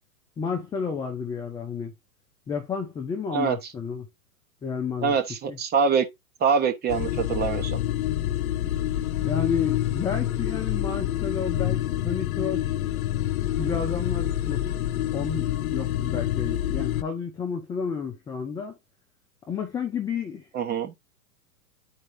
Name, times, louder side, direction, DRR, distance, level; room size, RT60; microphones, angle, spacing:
voice 1, 0.4-1.9 2.5-4.1 4.6-5.1 5.5-5.6 9.2-12.7 13.6-14.6 15.1-18.8 19.5-20.5, left 6 dB, 10° left, 0.5 m, -31 dB
voice 2, 5.0-6.1 6.4-7.8 20.5-20.9, right 6 dB, 20° right, 1.1 m, -24 dB
sound 1, 6.9-17.0, left 12 dB, 65° left, 0.7 m, -27 dB
10.5 x 4.5 x 2.6 m
hypercardioid pair, 115°, 47 cm